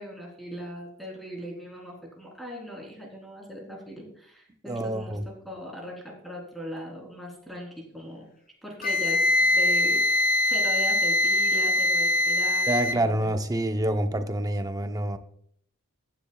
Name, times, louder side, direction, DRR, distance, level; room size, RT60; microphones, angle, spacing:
voice 1, 0.0-5.2 5.4-8.3 8.6-10.0 10.4-13.3, equal, ahead, 3.5 m, -39 dB
voice 2, 4.7-5.2 12.7-15.2, right 1 dB, 15° right, 0.7 m, -27 dB
Wind instrument woodwind instrument, 8.8-13.0, left 2 dB, 45° left, 0.6 m, -23 dB
14.5 x 10.0 x 2.3 m
head